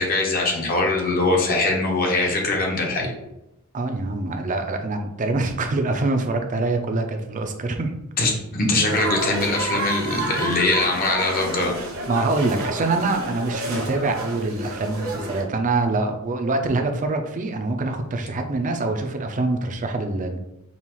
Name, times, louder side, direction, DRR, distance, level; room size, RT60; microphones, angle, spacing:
voice 1, 0.0-3.1 8.2-11.7, left 2 dB, 45° left, 0 dB, 0.9 m, -22 dB
voice 2, 3.7-7.9 12.1-20.4, right 2 dB, 35° right, 5 dB, 0.5 m, -25 dB
sound 1, 8.9-15.4, right 2 dB, 70° right, 1.1 m, -30 dB
5.4 x 2.4 x 3.0 m, 0.88 s
head